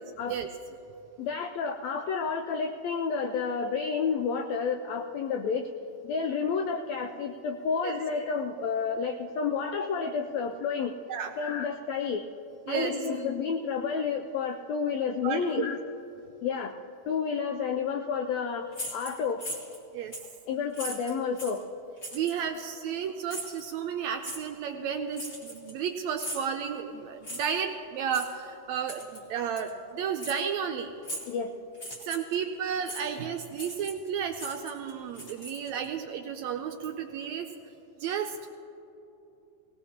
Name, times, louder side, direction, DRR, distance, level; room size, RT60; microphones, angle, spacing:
voice 1, 1.2-5.7 6.0-10.9 11.4-12.2 12.7-15.8 16.4-16.8 17.1-19.4 20.5-21.6 31.3-31.5, left 5 dB, 85° left, 5 dB, 1.5 m, -30 dB
voice 2, 15.2-15.7 19.9-20.1 22.1-30.9 32.0-37.5 38.0-38.5, right 7 dB, 80° right, 5 dB, 1.7 m, -32 dB
sound 1, 18.7-19.8 20.1-20.3 20.7-21.6 22.0-22.4 23.3-23.6 24.2-24.4 25.1-25.9 26.2-26.5 27.2-27.6 28.1-28.3 28.9-29.2 29.6-29.7 30.2-30.4 31.0-31.4 31.7-32.4 32.9-33.0 33.5-34.1 34.3-35.9, equal, 30° left, 2.1 m, -39 dB
18.5 x 18.5 x 2.9 m, 3.0 s
omnidirectional pair, 3.6 m